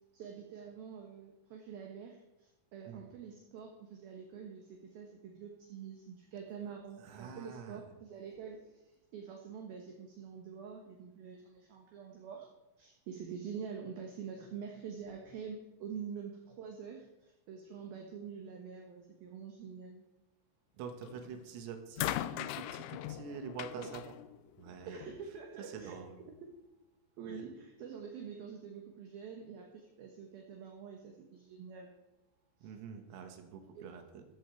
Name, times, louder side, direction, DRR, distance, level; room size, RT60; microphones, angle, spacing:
voice 1, 0.1-12.5 12.8-20.0 23.7-23.9 24.9-26.0 26.4-26.5 27.2-32.0 32.6-32.7 33.8-33.9, right 6 dB, 65° right, 2 dB, 2.5 m, -46 dB
voice 2, 7.0-7.8 20.8-24.1 24.6-25.1 25.6-26.2 27.3-27.4 32.6-34.3, right 6 dB, 85° right, 5 dB, 4.2 m, -46 dB
sound 1, 21.0-21.4 22.0-25.2 26.2-26.3, left 13 dB, 85° left, 2.6 m, -40 dB
14.5 x 14.0 x 4.7 m, 0.97 s
omnidirectional pair, 5.9 m